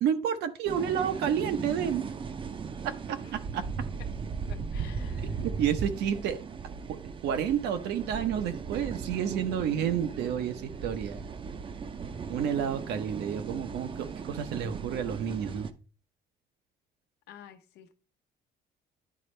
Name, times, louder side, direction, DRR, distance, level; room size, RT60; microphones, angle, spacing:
voice 1, 0.0-2.1 3.1-3.6 5.2-6.4 6.9-11.2 12.3-15.7, right 8 dB, 80° right, 1.0 m, -30 dB
sound 1, 0.7-15.7, right 5 dB, 30° right, 0.6 m, -37 dB
voice 2, 4.5-5.5 17.3-18.0, left 10 dB, 80° left, 0.8 m, -51 dB
10.5 x 4.1 x 3.3 m
cardioid pair, 110°, 17 cm